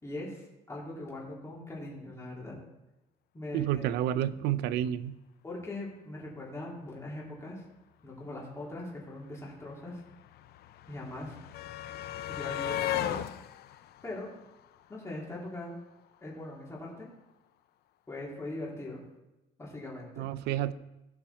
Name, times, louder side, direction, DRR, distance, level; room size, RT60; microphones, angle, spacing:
voice 1, 0.0-2.6 3.3-3.9 5.4-7.6 8.0-10.0 10.9-11.4 12.2-13.2 14.0-14.3 14.9-15.7 16.2-17.1 18.1-19.0 19.6-20.3, left 2 dB, 15° left, -5 dB, 3.8 m, -41 dB
voice 2, 3.5-5.2 20.2-20.7, right 11 dB, 85° right, 15 dB, 0.6 m, -30 dB
sound 1, 8.7-8.8 9.0-15.2 16.4-16.5 16.8-16.9, left 12 dB, 70° left, 0.6 m, -37 dB
17.0 x 5.7 x 4.5 m, 0.99 s
cardioid pair, 110°, 17 cm